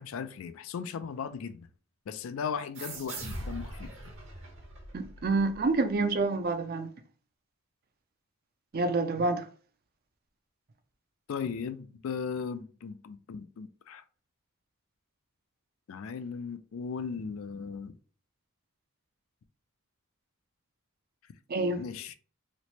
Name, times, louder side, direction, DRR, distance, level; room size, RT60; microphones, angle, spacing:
voice 1, 0.0-1.7 2.1-3.9 11.3-14.0 15.9-17.9 21.8-22.2, left 6 dB, 70° left, 0.3 m, -37 dB
sound 1, 2.7-6.0, right 2 dB, 60° right, 0.9 m, -42 dB
voice 2, 4.9-6.9 8.7-9.5 21.5-21.8, right 3 dB, 45° right, 0.4 m, -28 dB
3.0 x 2.0 x 4.1 m
head